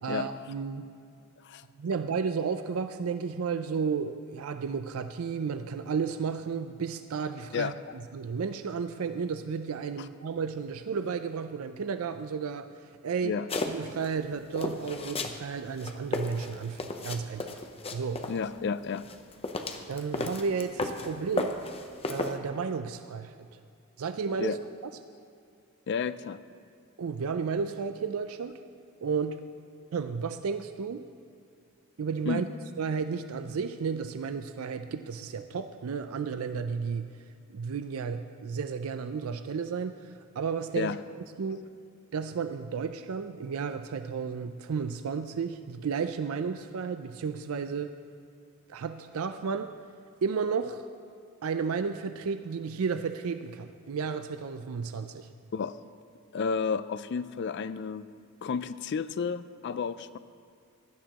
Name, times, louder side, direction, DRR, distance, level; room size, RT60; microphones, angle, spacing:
voice 1, 0.0-0.9 1.8-7.7 8.1-12.7 13.0-13.3 13.6-17.6 17.9-18.2 19.9-21.6 22.1-23.5 24.0-24.6 27.0-28.6 29.0-29.5 29.9-31.1 32.0-32.5 32.8-37.1 37.5-40.9 41.4-41.6 42.1-47.9 48.7-49.7 50.2-50.8 51.4-55.3, right 5 dB, 80° right, 9 dB, 0.4 m, -32 dB
sound 1, 13.5-14.1 14.6-15.4 15.7-18.4 19.0-21.1 21.4-22.4, left 2 dB, 30° left, 0.7 m, -33 dB
voice 2, 18.3-19.0 24.4-24.6 25.9-26.4 32.3-32.5 40.8-41.0 55.5-55.8 56.3-58.1 58.4-60.2, left 5 dB, 55° left, 14 dB, 0.4 m, -31 dB
16.0 x 11.5 x 3.0 m, 2.4 s
head